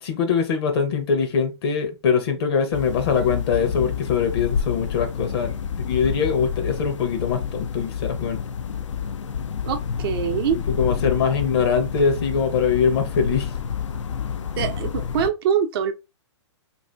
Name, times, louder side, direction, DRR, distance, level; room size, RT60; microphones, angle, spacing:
voice 1, 0.0-5.5 5.8-8.4 10.8-13.6, left 6 dB, 55° left, 0.8 m, -22 dB
sound 1, 2.7-15.3, left 7 dB, 85° left, 0.5 m, -29 dB
voice 2, 9.7-10.6 14.6-15.9, right 8 dB, 50° right, 0.6 m, -24 dB
2.7 x 2.4 x 3.2 m
hypercardioid pair, 125°, 15 cm